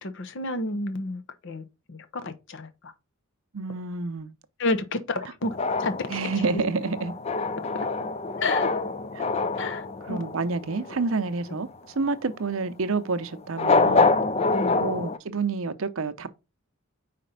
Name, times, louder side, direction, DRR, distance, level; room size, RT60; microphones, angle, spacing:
voice 1, 0.0-2.9 4.6-6.2 6.5-6.7 8.4-8.7 9.6-10.2 14.5-14.8, left 2 dB, 60° left, 0.8 m, -31 dB
voice 2, 3.5-4.3 6.1-7.1 9.1-9.3 10.1-11.7 12.0-14.1 14.8-16.3, right 4 dB, 70° right, 0.7 m, -28 dB
sound 1, 5.4-11.2 13.5-15.2, left 3 dB, 30° left, 0.4 m, -26 dB
5.1 x 4.2 x 5.6 m
head